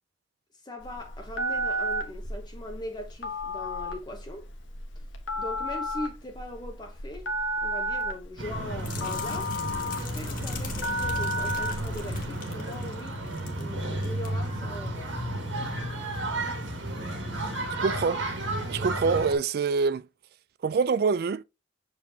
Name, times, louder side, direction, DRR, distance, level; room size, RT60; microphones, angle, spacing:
voice 1, 0.6-4.5 5.4-7.3 7.6-13.3 13.6-15.0, left 1 dB, 20° left, 0.8 m, -40 dB
Telephone, 0.8-12.2, equal, 80° left, 1.3 m, -32 dB
sound 1, 8.4-19.3, right 1 dB, 75° right, 1.8 m, -32 dB
sound 2, 8.8-13.7 13.9-14.3 14.7-14.9, left 7 dB, 45° left, 1.4 m, -43 dB
voice 2, 17.8-18.2 18.7-20.1 20.6-21.4, right 5 dB, 50° right, 0.3 m, -25 dB
7.2 x 4.8 x 2.7 m
head